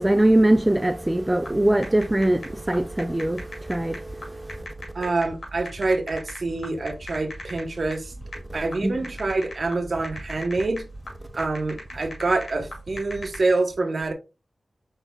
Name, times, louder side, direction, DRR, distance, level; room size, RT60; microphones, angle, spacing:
voice 1, 0.0-4.7 8.8-8.9, right 1 dB, 20° right, 0.3 m, -22 dB
sound 1, 1.5-13.4, equal, 70° left, 2.5 m, -39 dB
voice 2, 4.9-8.1 8.5-10.8 11.3-14.1, right 3 dB, 65° right, 0.9 m, -26 dB
5.3 x 4.0 x 2.3 m
cardioid pair, 40°, 0 cm